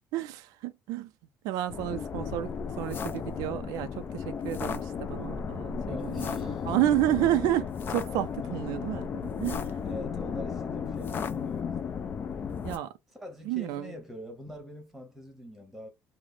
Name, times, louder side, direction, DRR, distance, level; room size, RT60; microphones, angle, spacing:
voice 1, 0.1-1.1 1.4-2.5 2.8-9.8 12.6-12.9 13.4-13.9, right 13 dB, 85° right, 0.4 m, -30 dB
sound 1, 1.7-12.8, left 6 dB, 35° left, 0.4 m, -34 dB
voice 2, 5.9-6.7 7.1-7.3 8.4-8.6 9.8-12.0 13.1-15.9, left 1 dB, ahead, 1.0 m, -44 dB
3.2 x 2.1 x 3.8 m
cardioid pair, 150°, 6 cm